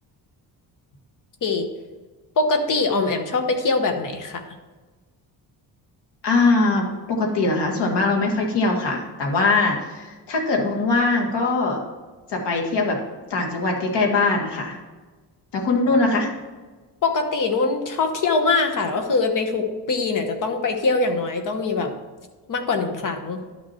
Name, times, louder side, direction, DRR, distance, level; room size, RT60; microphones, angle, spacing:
voice 1, 2.4-4.6 15.9-16.0 17.0-21.9 22.5-23.4, left 3 dB, 50° left, 6 dB, 1.1 m, -23 dB
voice 2, 6.2-11.8 12.3-13.0 13.3-14.8 15.5-16.3, left 3 dB, 75° left, 0 dB, 1.9 m, -21 dB
11.0 x 6.2 x 4.3 m, 1.3 s
wide cardioid pair, 175°, 41 cm